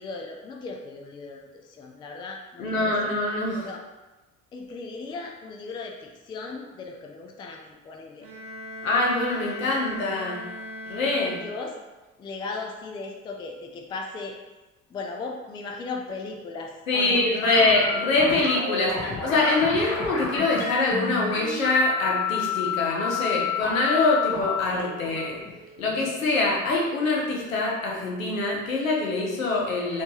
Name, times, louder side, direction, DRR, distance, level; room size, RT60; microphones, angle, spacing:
voice 1, 0.0-3.0 3.6-3.8 4.5-8.3 11.4-11.8 12.2-14.4 14.9-17.3, left 3 dB, 15° left, 1 dB, 0.3 m, -37 dB
voice 2, 2.6-3.7 8.8-10.4 10.8-11.4 16.9-25.4 25.8-30.0, left 2 dB, 75° left, -2 dB, 0.8 m, -24 dB
Bowed string instrument, 8.2-12.0, left 2 dB, 55° right, 0.9 m, -39 dB
sound 1, 17.4-26.3, left 6 dB, 40° left, 0.9 m, -30 dB
3.2 x 3.1 x 2.8 m, 1.1 s
figure-of-eight pair, 55°, 40 cm